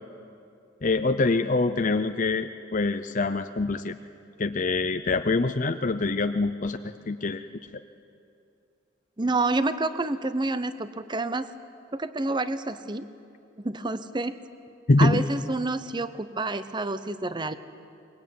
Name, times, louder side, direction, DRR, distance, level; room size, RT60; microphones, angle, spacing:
voice 1, 0.8-4.0 4.4-7.4 14.9-15.2, left 3 dB, 40° left, 8 dB, 0.6 m, -25 dB
voice 2, 9.2-11.5 11.9-13.1 13.6-14.3 15.0-17.5, right 2 dB, 20° right, 12 dB, 0.8 m, -28 dB
23.5 x 22.0 x 9.4 m, 2.6 s
head